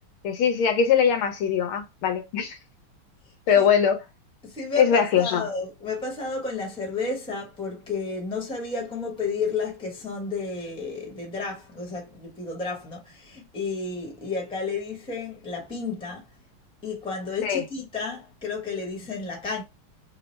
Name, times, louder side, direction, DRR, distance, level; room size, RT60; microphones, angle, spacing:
voice 1, 0.2-2.6 3.5-4.0 4.8-5.5 17.4-17.6, left 7 dB, 80° left, 1.7 m, -21 dB
voice 2, 4.4-16.2 16.8-19.6, left 4 dB, 5° left, 0.8 m, -32 dB
3.7 x 2.0 x 4.3 m
omnidirectional pair, 2.3 m